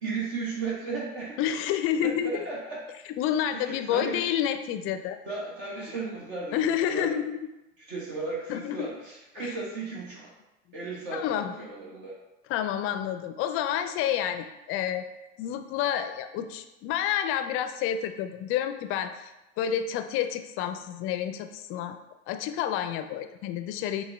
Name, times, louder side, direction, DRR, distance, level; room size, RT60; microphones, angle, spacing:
voice 1, 0.0-1.4 2.0-2.8 3.5-4.2 5.2-7.1 7.8-10.3 10.7-12.2, right 3 dB, 55° right, -5 dB, 1.3 m, -35 dB
voice 2, 1.4-2.4 3.1-5.2 6.5-7.5 8.5-8.9 9.4-9.6 11.1-11.5 12.5-15.1 15.4-19.3 19.6-22.0 22.3-24.0, left 10 dB, 40° left, 8 dB, 0.4 m, -29 dB
5.5 x 2.2 x 3.3 m, 0.96 s
figure-of-eight pair, 75°, 35 cm